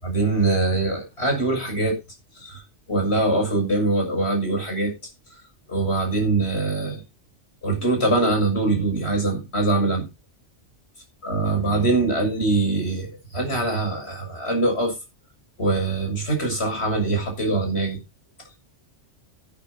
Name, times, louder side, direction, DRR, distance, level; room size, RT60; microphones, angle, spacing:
voice 1, 0.0-2.0 2.4-2.6 2.9-4.9 5.7-7.0 7.6-10.1 11.2-14.9 15.6-18.0, right 2 dB, 60° left, 2 dB, 7.2 m, -23 dB
12.0 x 12.0 x 4.2 m, 0.27 s
omnidirectional pair, 1.2 m